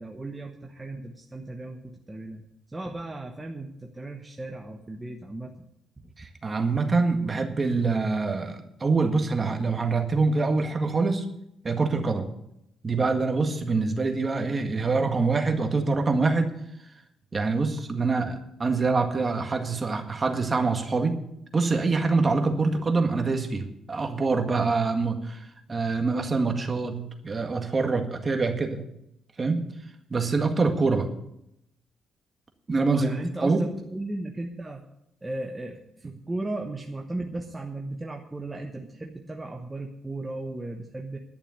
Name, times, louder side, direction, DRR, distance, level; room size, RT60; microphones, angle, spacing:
voice 1, 0.0-5.6 6.0-6.1 32.9-34.8 35.2-41.2, right 2 dB, 15° right, 1 dB, 1.2 m, -36 dB
voice 2, 6.2-11.3 11.6-12.3 12.8-16.5 17.3-21.2 21.5-28.8 29.4-29.7 30.1-31.1 32.7-33.1 33.4-33.6, right 3 dB, 30° right, 5 dB, 1.8 m, -25 dB
11.5 x 6.8 x 9.4 m, 0.80 s
cardioid pair, 100°, 0 cm